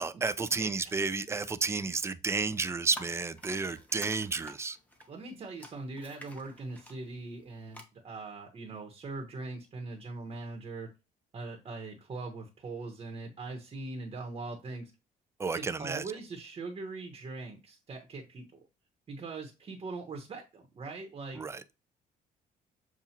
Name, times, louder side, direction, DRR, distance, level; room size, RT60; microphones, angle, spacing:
voice 1, 0.0-4.8 15.4-16.0 21.3-21.7, right 4 dB, 15° right, 0.3 m, -32 dB
sound 1, 2.9-7.8, equal, 10° left, 0.9 m, -50 dB
voice 2, 5.1-10.9 11.3-14.9 15.5-18.6 19.1-21.5, right 3 dB, 35° right, 1.0 m, -41 dB
7.0 x 2.4 x 2.9 m
cardioid pair, 120°, 17 cm